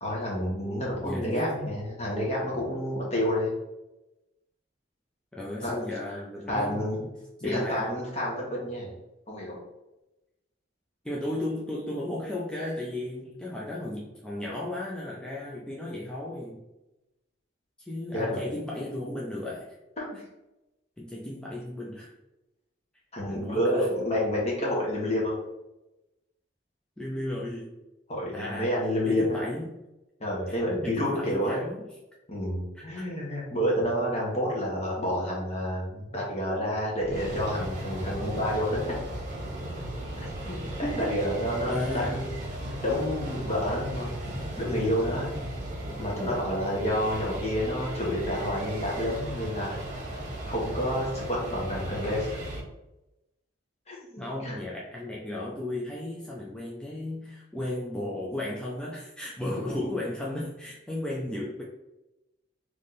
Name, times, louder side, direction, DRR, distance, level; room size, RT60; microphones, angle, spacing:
voice 1, 0.0-3.5 5.6-5.7 6.5-7.0 7.4-8.9 9.3-9.6 18.1-18.4 20.0-20.2 23.1-25.4 28.1-29.4 30.2-31.6 32.3-39.0 40.1-42.3 42.6-45.3 46.0-49.8 50.5-52.3 53.9-54.6, equal, 35° left, -4 dB, 1.5 m, -29 dB
voice 2, 1.0-1.6 5.3-8.0 11.0-16.6 17.8-19.7 21.0-22.1 23.3-23.9 27.0-27.7 28.3-28.7 29.1-29.8 30.5-30.6 30.8-31.9 32.7-33.0 40.8-41.1 41.7-42.2 45.8-46.0 54.2-61.6, left 1 dB, 5° left, -5 dB, 0.5 m, -35 dB
sound 1, 37.0-52.6, right 1 dB, 40° right, 1.0 m, -36 dB
3.5 x 3.1 x 4.0 m, 0.97 s
head